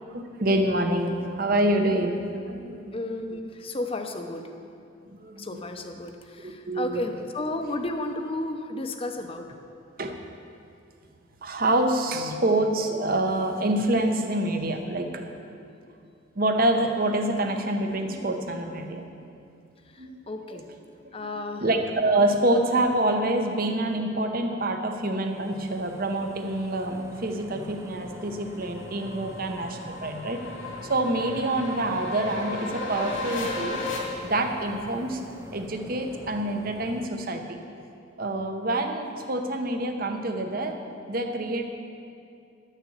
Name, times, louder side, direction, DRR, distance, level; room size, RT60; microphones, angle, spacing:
voice 1, 0.1-3.0 5.1-5.6 6.4-7.0 10.0-10.2 11.4-15.5 16.4-19.1 20.0-20.1 20.5-20.6 21.2-21.3 21.6-30.4 30.9-33.8 34.2-35.2 35.5-37.6 38.2-40.8 41.1-41.6, right 1 dB, 45° right, 5 dB, 0.9 m, -26 dB
voice 2, 2.9-4.5 5.4-9.5 19.9-20.6 21.1-21.7, left 2 dB, 30° left, 5 dB, 0.7 m, -33 dB
sound 1, 25.1-37.1, right 1 dB, 15° right, 0.5 m, -45 dB
sound 2, 27.4-34.0, left 3 dB, 80° left, 2.1 m, -36 dB
11.0 x 6.7 x 7.4 m, 2.5 s
head